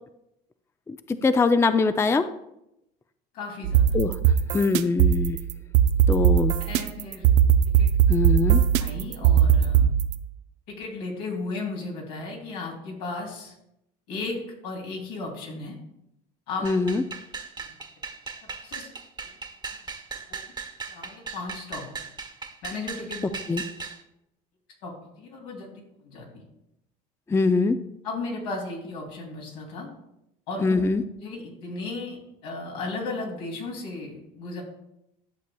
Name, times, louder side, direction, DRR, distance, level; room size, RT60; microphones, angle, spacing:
voice 1, 0.9-2.3 3.9-4.1 4.5-5.4 6.1-6.5 8.1-8.6 16.6-17.0 23.5-23.6 27.3-27.8 30.6-31.0, left 4 dB, 15° left, 11 dB, 0.4 m, -22 dB
voice 2, 3.3-4.0 6.6-7.3 7.7-7.9 8.8-9.9 10.7-13.5 14.1-14.4 14.6-15.8 16.5-16.7 17.6-17.7 18.6-18.9 20.3-20.4 20.9-21.8 22.6-23.4 24.8-25.7 26.0-26.5 28.0-29.9 30.5-30.9 31.2-34.6, left 3 dB, 80° left, -1 dB, 2.9 m, -35 dB
sound 1, 3.6-10.2, right 9 dB, 70° right, 0.5 m, -20 dB
sound 2, 16.6-24.0, right 5 dB, 20° right, 1.2 m, -38 dB
11.0 x 6.8 x 2.3 m, 0.82 s
supercardioid pair, 80°, 19 cm